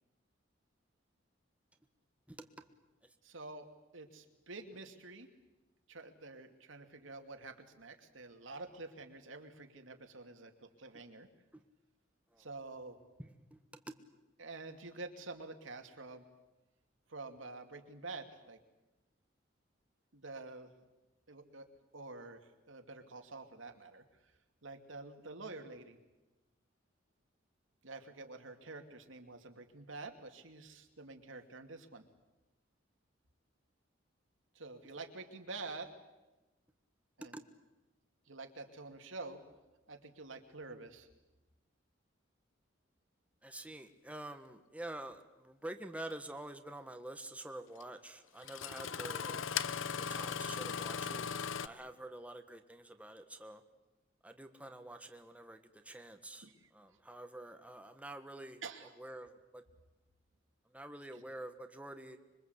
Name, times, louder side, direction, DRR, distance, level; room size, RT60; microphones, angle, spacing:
voice 1, 3.2-3.7 3.9-5.3 5.9-11.3 12.4-13.0 14.4-16.3 17.1-18.6 20.1-20.7 21.3-21.7 21.9-24.0 24.6-26.0 27.8-32.0 34.5-36.0 37.2-37.4 38.3-39.4 39.9-41.1 56.4-56.7 58.6-58.9 61.1-61.2, right 3 dB, 85° right, 5 dB, 2.8 m, -48 dB
voice 2, 43.4-49.5 50.0-51.3 51.6-53.6 54.2-58.6 59.0-59.6 60.7-62.2, right 1 dB, 5° right, 6 dB, 1.5 m, -47 dB
Engine starting, 46.1-46.2 47.8-47.9 48.4-51.7, left 7 dB, 80° left, 0.8 m, -38 dB
26.0 x 23.5 x 8.2 m, 1.1 s
head